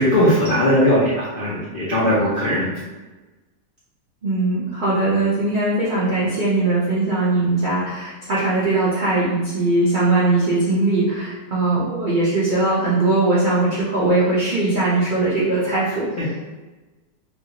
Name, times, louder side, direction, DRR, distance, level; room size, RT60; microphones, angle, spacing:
voice 1, 0.0-2.7 16.2-16.3, equal, 70° left, -9 dB, 0.5 m, -18 dB
voice 2, 4.2-16.4, right 2 dB, 90° right, -9 dB, 0.4 m, -20 dB
3.0 x 2.6 x 2.8 m, 1.2 s
omnidirectional pair, 1.8 m